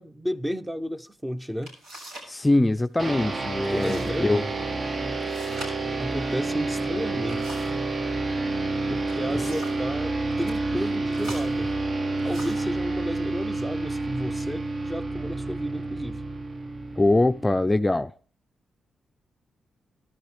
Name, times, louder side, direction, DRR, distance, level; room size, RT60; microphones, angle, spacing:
voice 1, 0.0-1.7 3.7-4.5 6.0-7.4 8.9-11.7 12.2-16.2, equal, 10° right, 0.8 m, -33 dB
sound 1, 1.1-1.2 1.6-2.4 2.6-3.1 3.6-4.1 4.4-4.5 5.2-7.9 8.8-9.9 10.3-10.6 11.1-12.8 13.5-13.7 14.2-14.7, right 1 dB, 85° right, 7.1 m, -44 dB
voice 2, 2.3-4.5 17.0-18.1, left 2 dB, 20° left, 0.4 m, -22 dB
sound 2, 3.0-17.8, right 2 dB, 45° right, 1.0 m, -29 dB
13.5 x 12.5 x 3.3 m
supercardioid pair, 55°, 0 cm